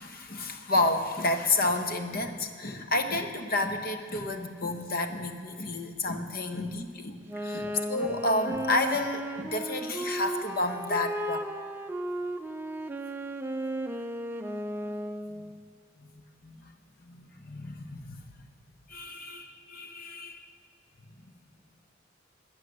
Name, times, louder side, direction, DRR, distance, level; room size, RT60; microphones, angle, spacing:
voice 1, 0.0-11.4 15.3-15.6 16.0-16.1 16.4-16.7 17.0-18.2 18.9-20.5, left 2 dB, 50° left, 6 dB, 1.1 m, -30 dB
Wind instrument woodwind instrument, 7.3-15.6, right 1 dB, 10° right, 0.5 m, -35 dB
21.5 x 7.6 x 6.6 m, 2.2 s
head